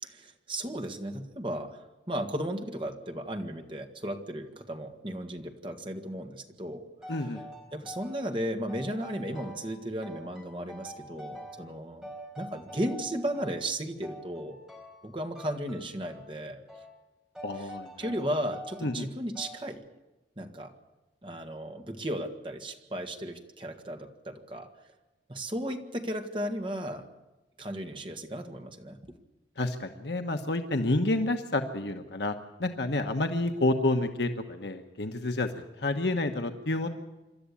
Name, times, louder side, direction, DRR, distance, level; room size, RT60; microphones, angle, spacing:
voice 1, 0.0-7.3 7.7-12.1 12.4-14.6 15.0-16.6 17.6-17.7 18.0-19.8 20.4-20.7 21.2-24.7 25.3-27.1 27.6-29.0, right 1 dB, 30° right, 4 dB, 1.8 m, -35 dB
sound 1, 7.0-8.3 8.7-9.8 10.0-11.7 12.0-13.6 14.0-15.1 15.3-16.3 16.7-16.9 17.3-18.9 19.3-19.7, equal, 5° right, 3.9 m, -46 dB
voice 2, 7.1-7.4 17.4-17.9 18.8-19.1 29.6-32.3 32.6-36.9, left 2 dB, 70° left, 5 dB, 1.2 m, -29 dB
27.0 x 12.5 x 8.5 m, 1.1 s
head